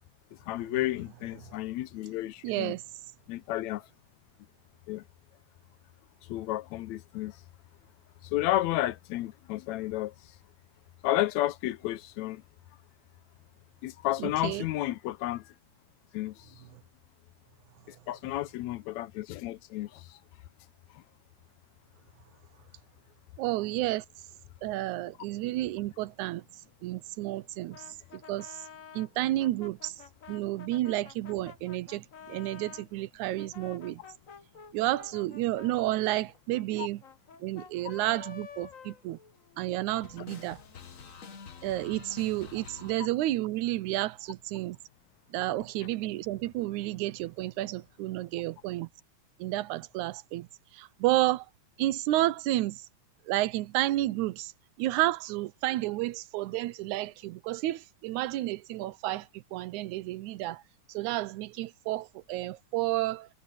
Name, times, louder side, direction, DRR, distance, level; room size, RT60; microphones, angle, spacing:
voice 1, 0.5-2.7 3.3-3.9 4.9-5.0 6.2-7.4 8.3-10.4 11.0-12.4 13.8-15.5 16.1-16.6 17.9-20.2 20.9-21.0 36.8-36.9, left 15 dB, 75° left, 1.9 m, -32 dB
voice 2, 2.4-2.8 14.2-14.7 23.4-24.1 24.6-26.4 26.8-28.7 28.9-30.0 30.3-34.0 34.7-37.0 37.4-39.2 39.6-40.6 41.6-44.8 45.3-48.9 49.4-51.5 51.8-52.9 53.3-54.5 54.8-60.6 60.9-63.3, right 16 dB, 85° right, 2.1 m, -31 dB
sound 1, 27.7-32.9 33.4-39.7 39.9-42.9, left 6 dB, 50° left, 0.9 m, -49 dB
omnidirectional pair, 3.4 m